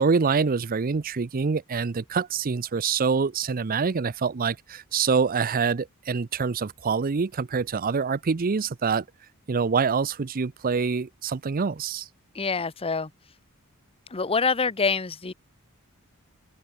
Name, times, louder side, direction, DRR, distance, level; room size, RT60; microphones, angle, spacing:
voice 1, 0.0-9.0 9.5-12.1, right 5 dB, 40° right, 0.5 m, -25 dB
voice 2, 12.3-13.1 14.1-15.3, left 4 dB, 25° left, 0.8 m, -26 dB
head